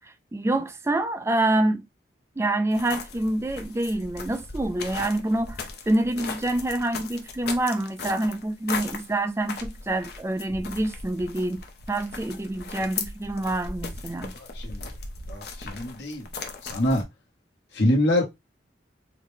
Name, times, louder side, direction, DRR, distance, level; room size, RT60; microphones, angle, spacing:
voice 1, 0.3-1.8 2.4-14.3, right 1 dB, 15° right, 0.3 m, -26 dB
sound 1, 2.7-17.0, left 4 dB, 60° left, 0.7 m, -37 dB
voice 2, 15.3-16.3 16.7-17.0 17.7-18.3, left 1 dB, 75° left, 1.1 m, -24 dB
3.9 x 2.2 x 3.1 m
head